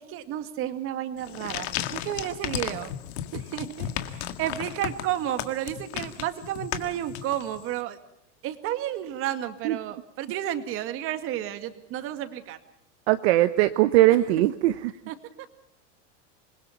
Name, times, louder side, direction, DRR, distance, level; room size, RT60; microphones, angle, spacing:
voice 1, 0.0-2.9 3.3-8.0 8.4-12.6 15.1-15.2, right 12 dB, 35° right, 9 dB, 2.1 m, -32 dB
sound 1, 1.2-7.7, left 11 dB, 65° left, 2.0 m, -35 dB
voice 2, 13.1-14.9, right 16 dB, 60° right, 10 dB, 1.1 m, -20 dB
27.0 x 21.5 x 5.8 m, 0.75 s
supercardioid pair, 155°, 36 cm